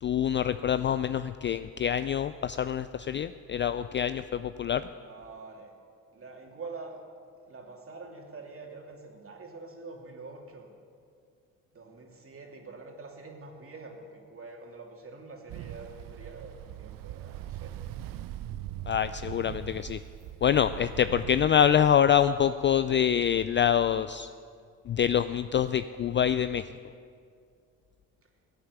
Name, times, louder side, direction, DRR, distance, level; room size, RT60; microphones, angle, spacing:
voice 1, 0.0-4.8 18.9-20.0 20.4-24.3 24.9-26.6, left 9 dB, 30° left, 13 dB, 0.4 m, -25 dB
voice 2, 5.0-5.7 6.1-7.0 7.5-10.7 11.7-17.7, right 3 dB, 35° right, 1 dB, 2.7 m, -45 dB
Ocean, 15.5-21.7, right 13 dB, 55° right, 0.6 m, -41 dB
15.5 x 8.6 x 6.8 m, 2.2 s
hypercardioid pair, 50°, 40 cm